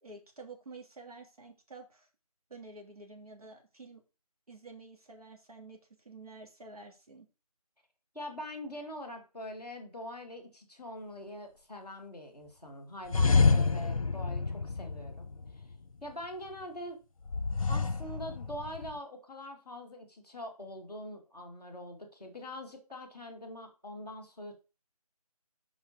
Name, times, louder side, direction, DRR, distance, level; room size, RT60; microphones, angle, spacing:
voice 1, 0.0-2.1 2.5-4.0 4.5-5.8 6.0-7.3, right 3 dB, 70° right, 1 dB, 3.0 m, -49 dB
voice 2, 8.1-15.3 15.5-15.6 16.0-17.0 17.3-24.6, left 1 dB, 5° right, -7 dB, 0.8 m, -44 dB
sound 1, 13.1-15.7 17.3-19.0, left 4 dB, 60° left, 0.7 m, -28 dB
5.7 x 5.4 x 5.3 m, 0.32 s
figure-of-eight pair, 175°, 20 cm